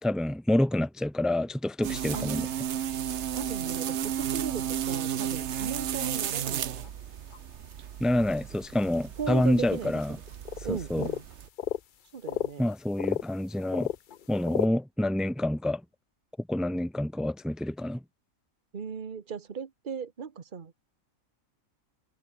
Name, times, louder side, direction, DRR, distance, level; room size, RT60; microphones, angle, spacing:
voice 1, 0.0-2.5 8.0-10.2 10.7-11.1 12.6-13.9 14.3-15.8 16.5-18.0, left 1 dB, ahead, 1.3 m, -27 dB
sound 1, 1.8-11.5, right 10 dB, 60° right, 1.0 m, -33 dB
voice 2, 3.3-6.9 9.2-10.2 10.6-11.2 12.1-12.7 18.7-20.7, right 6 dB, 40° right, 1.3 m, -37 dB
sound 2, 6.0-6.1 6.4-6.5 6.8-6.9 7.3-7.4 8.7-8.8 9.2-9.3 10.0-10.1 10.3-10.7 11.0-11.8 12.3-13.3 13.6-14.7, left 9 dB, 55° left, 0.6 m, -32 dB
omnidirectional pair, 1.5 m